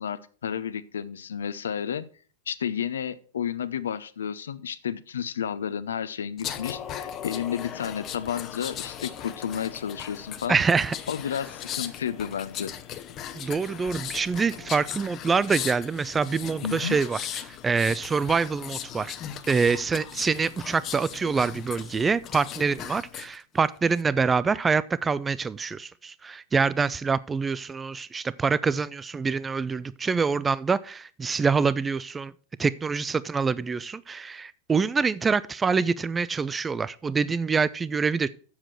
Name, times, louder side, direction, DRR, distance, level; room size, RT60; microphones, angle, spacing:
voice 1, 0.0-2.1 2.5-10.6 11.1-12.7 16.6-17.0, left 8 dB, 75° left, 0.6 m, -31 dB
sound 1, 6.4-23.4 23.8-24.0, left 10 dB, 35° left, 0.8 m, -38 dB
voice 2, 10.5-10.9 13.3-17.2 17.5-19.1 19.5-32.3 32.6-38.3, right 5 dB, 15° right, 0.4 m, -25 dB
7.4 x 7.2 x 6.0 m
figure-of-eight pair, 95°, 0 cm